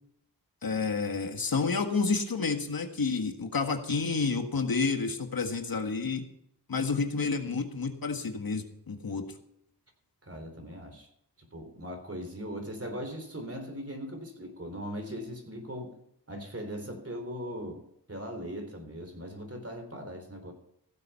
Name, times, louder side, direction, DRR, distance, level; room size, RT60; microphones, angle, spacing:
voice 1, 0.6-6.2 6.7-9.3, left 4 dB, 60° left, 5 dB, 1.7 m, -30 dB
voice 2, 10.2-11.1 11.5-16.0 16.3-17.8 18.1-20.5, equal, 35° right, 5 dB, 4.0 m, -39 dB
16.0 x 7.8 x 5.7 m, 0.75 s
cardioid pair, 50°, 41 cm